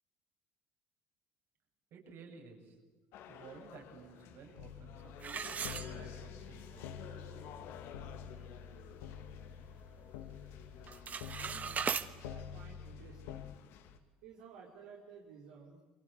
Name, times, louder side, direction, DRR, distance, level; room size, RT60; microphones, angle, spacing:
voice 1, 1.9-2.8 3.3-7.0, right 5 dB, 65° right, 2 dB, 7.5 m, -54 dB
sound 1, 3.1-14.0, left 9 dB, 75° left, 2.5 m, -53 dB
sound 2, 4.6-13.6, left 7 dB, 90° left, 1.5 m, -48 dB
sound 3, 5.2-6.5 6.9-7.0 7.6-7.7 8.1-8.4 8.8-9.9 10.2-10.5 10.8-12.1, right 6 dB, 35° right, 1.4 m, -39 dB
voice 2, 11.3-12.0 12.3-13.5 14.0-15.8, right 6 dB, 90° right, -2 dB, 4.4 m, -55 dB
29.0 x 23.5 x 8.3 m, 1.2 s
supercardioid pair, 95°, 5 cm